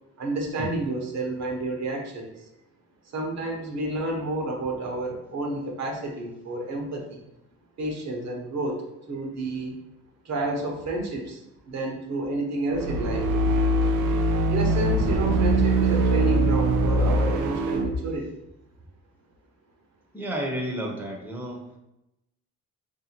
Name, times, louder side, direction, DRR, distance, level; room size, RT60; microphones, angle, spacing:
voice 1, 0.2-2.4 3.1-7.2 7.8-8.8 9.1-9.7 10.2-13.3 14.5-18.3, right 2 dB, 60° right, 0 dB, 1.0 m, -30 dB
sound 1, 12.7-17.9, right 1 dB, 85° right, 0.6 m, -22 dB
voice 2, 20.1-21.7, right 1 dB, 5° right, 0 dB, 0.8 m, -31 dB
3.3 x 2.7 x 4.3 m, 0.88 s
cardioid pair, 90°, 30 cm